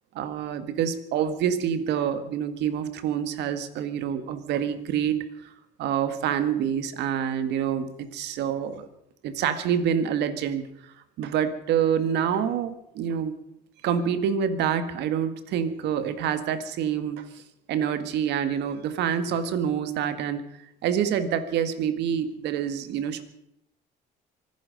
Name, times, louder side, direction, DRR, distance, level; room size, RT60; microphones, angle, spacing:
voice 1, 0.1-5.2 5.8-8.9 9.2-13.3 13.8-17.4 17.7-20.4 20.8-23.2, right 8 dB, 70° right, 10 dB, 1.8 m, -27 dB
25.5 x 10.0 x 5.3 m, 0.79 s
cardioid pair, 105°, 18 cm